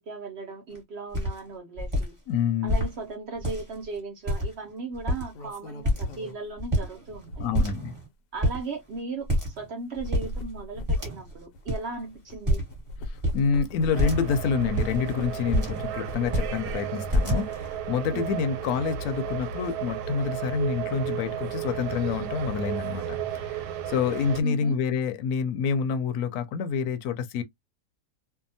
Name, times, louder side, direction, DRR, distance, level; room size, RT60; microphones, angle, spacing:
voice 1, 0.0-2.1 2.6-7.6 8.3-9.3 9.6-12.6 18.1-18.4 24.4-24.8, right 3 dB, 60° right, 0.7 m, -37 dB
sound 1, 0.7-0.8 1.1-1.4 1.8-2.1 2.7-2.9 3.4-3.8 4.3-4.7 4.9-5.5 5.9-6.3 6.6-7.2 7.5-8.1 8.4-8.6 9.3-9.7 10.0-10.3 10.9-11.4 11.7-11.8 12.5-12.8 13.2-13.4 14.0-14.3 14.7-15.9 16.2-16.5 17.1-17.7, equal, 20° right, 1.0 m, -26 dB
voice 2, 2.3-2.8 7.4-7.9 13.3-23.1 23.5-23.6 23.9-27.4, left 6 dB, 70° left, 1.0 m, -27 dB
sound 2, 3.6-3.7 5.0-7.9 8.6-8.7 9.8-12.4 12.7-17.0 17.4-18.3, left 1 dB, 90° left, 1.2 m, -41 dB
sound 3, 13.9-24.4, right 8 dB, 90° right, 1.2 m, -33 dB
2.7 x 2.2 x 2.6 m
omnidirectional pair, 1.7 m